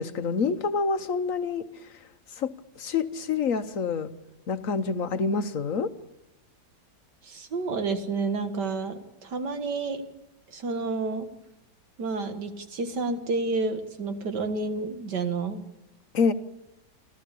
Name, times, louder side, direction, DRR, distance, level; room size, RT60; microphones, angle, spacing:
voice 1, 0.0-1.7 2.4-4.1 4.5-5.9 16.1-16.3, left 5 dB, 55° left, 10 dB, 1.2 m, -27 dB
voice 2, 7.2-10.0 10.5-11.3 12.0-15.6, right 3 dB, 80° right, 7 dB, 2.3 m, -30 dB
28.5 x 13.5 x 8.4 m, 0.96 s
omnidirectional pair, 1.8 m